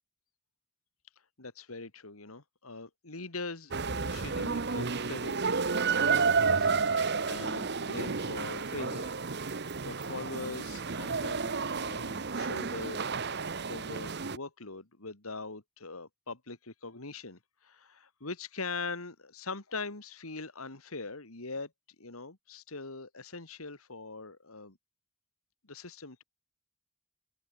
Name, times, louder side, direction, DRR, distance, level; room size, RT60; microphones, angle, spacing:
voice 1, 1.4-9.2 9.8-21.7 22.0-24.8 25.7-26.2, left 3 dB, 80° left, 2.7 m, -42 dB
sound 1, 3.7-14.4, right 5 dB, 50° right, 1.2 m, -31 dB
head